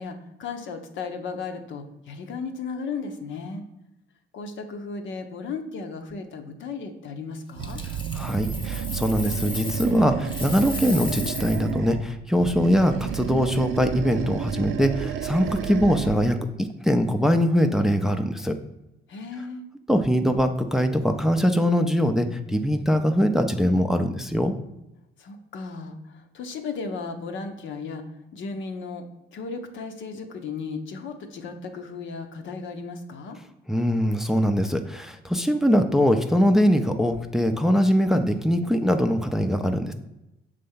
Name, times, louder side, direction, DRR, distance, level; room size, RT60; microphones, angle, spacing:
voice 1, 0.0-3.6 4.3-7.8 19.1-19.6 25.2-33.4, left 4 dB, 75° left, 5 dB, 0.8 m, -35 dB
Coin (dropping), 7.6-10.0 10.2-11.7 14.5-14.7, left 3 dB, 25° left, 0.8 m, -36 dB
Animal, 7.6-12.1 12.4-16.3, right 9 dB, 80° right, 0.5 m, -31 dB
voice 2, 8.2-18.6 19.9-24.5 33.7-39.9, equal, ahead, 6 dB, 0.5 m, -22 dB
6.5 x 3.4 x 5.5 m, 0.91 s
cardioid pair, 90°, 20 cm